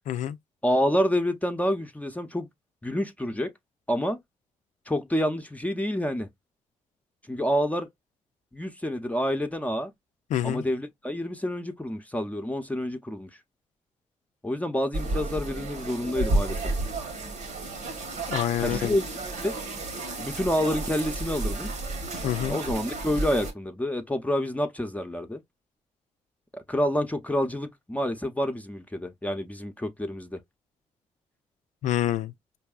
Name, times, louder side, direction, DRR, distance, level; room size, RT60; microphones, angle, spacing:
voice 1, 0.6-2.5 2.8-3.5 3.9-4.2 4.9-6.3 7.3-7.9 8.5-9.9 10.4-13.3 14.4-16.6 18.6-19.1 19.4-19.5 20.2-21.7 22.5-25.4 26.5-30.4, equal, 10° left, 0.6 m, -28 dB
voice 2, 10.3-10.6 18.3-19.0 22.2-22.6 31.8-32.3, left 12 dB, 75° left, 0.4 m, -27 dB
sound 1, 14.9-23.5, right 2 dB, 75° right, 1.4 m, -31 dB
4.6 x 2.7 x 2.3 m
cardioid pair, 65°, 12 cm